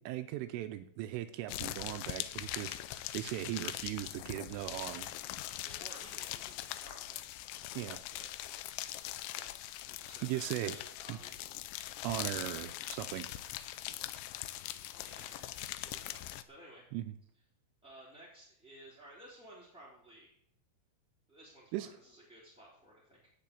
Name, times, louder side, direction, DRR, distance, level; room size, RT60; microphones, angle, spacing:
voice 1, 0.0-5.1 7.8-8.0 10.2-10.8 11.1-11.2 12.0-13.6 15.2-15.3 16.9-17.2 21.7-21.9, right 14 dB, 85° right, 9 dB, 3.1 m, -39 dB
sound 1, 1.5-16.4, left 14 dB, 90° left, 2.5 m, -42 dB
voice 2, 5.6-7.2 8.1-8.3 9.3-9.5 9.8-11.5 14.9-16.8 17.8-20.3 21.3-23.3, right 1 dB, ahead, -7 dB, 2.3 m, -56 dB
15.0 x 5.6 x 8.5 m, 0.68 s
omnidirectional pair, 5.9 m